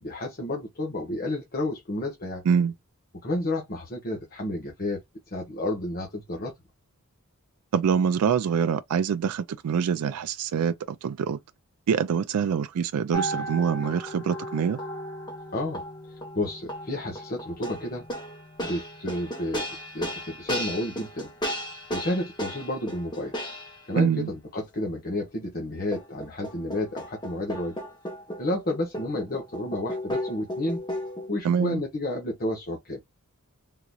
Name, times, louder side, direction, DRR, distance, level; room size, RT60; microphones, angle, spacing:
voice 1, 0.0-2.4 3.2-5.0 5.3-6.5 15.5-18.1 18.6-19.6 19.9-21.3 21.9-23.3 23.9-27.7 28.4-30.8 31.3-33.0, left 1 dB, 45° left, 1.1 m, -31 dB
voice 2, 7.7-11.4 11.9-14.8 24.0-24.3 31.4-31.8, right 7 dB, 90° right, 0.4 m, -25 dB
sound 1, 13.1-23.9 25.9-31.3, equal, 20° left, 1.2 m, -35 dB
3.7 x 2.9 x 2.3 m
head